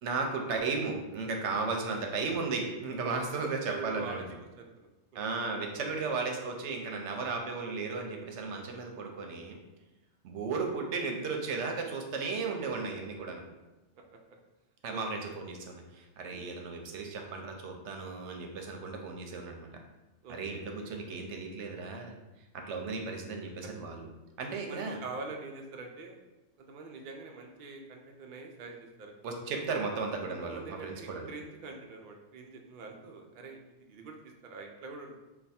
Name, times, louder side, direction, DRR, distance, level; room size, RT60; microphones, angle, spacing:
voice 1, 0.0-4.2 5.1-9.6 10.2-13.4 14.8-19.7 20.3-22.1 22.5-24.0 24.4-25.0 29.2-31.3, right 4 dB, 85° right, 2 dB, 0.9 m, -35 dB
voice 2, 3.7-4.3 4.6-5.2 14.1-14.2 14.9-15.0 16.3-16.5 20.2-20.6 24.7-26.2 26.6-29.1 30.3-33.6 33.9-35.2, right 3 dB, 60° right, 2 dB, 0.5 m, -44 dB
3.3 x 2.3 x 4.1 m, 1.1 s
omnidirectional pair, 1.2 m